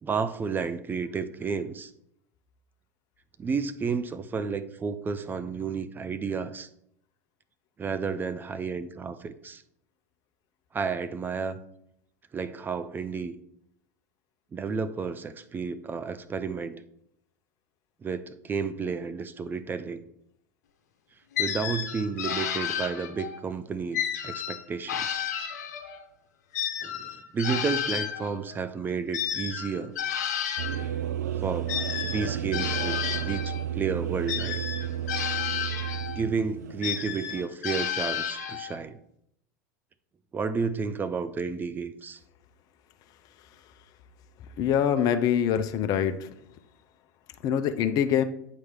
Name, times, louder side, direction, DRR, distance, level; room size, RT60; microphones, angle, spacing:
voice 1, 0.0-1.9 3.4-6.7 7.8-9.6 10.7-11.6 12.3-13.3 14.5-16.8 18.0-20.0 21.4-25.2 26.8-29.9 31.4-31.7 32.0-34.6 36.1-39.0 40.3-42.2, right 5 dB, 20° right, 12 dB, 0.5 m, -31 dB
sound 1, 21.4-23.4 23.9-26.0 26.5-30.9 31.7-33.7 34.3-36.3 36.8-38.8, left 9 dB, 70° left, 1.1 m, -32 dB
sound 2, 30.6-37.5, right 11 dB, 80° right, 0.4 m, -32 dB
voice 2, 44.6-46.3 47.4-48.2, left 9 dB, 45° left, 8 dB, 0.7 m, -24 dB
8.5 x 3.2 x 5.9 m, 0.73 s
hypercardioid pair, 90°, 9 cm